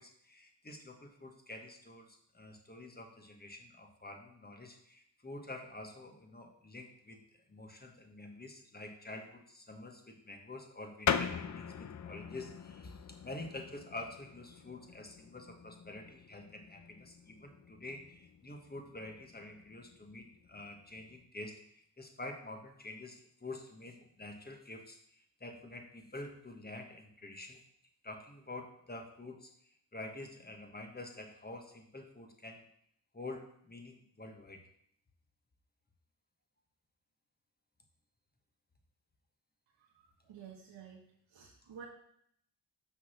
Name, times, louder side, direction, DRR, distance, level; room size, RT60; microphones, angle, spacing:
voice 1, 0.0-7.2 7.5-27.6 28.0-32.6 33.1-34.6, left 2 dB, 20° left, 4 dB, 1.4 m, -48 dB
sound 1, 11.0-21.2, left 7 dB, 40° left, 0.6 m, -42 dB
voice 2, 39.8-41.0 41.3-41.8, right 7 dB, 70° right, -2 dB, 1.3 m, -52 dB
5.9 x 4.1 x 6.1 m, 0.70 s
supercardioid pair, 45°, 46 cm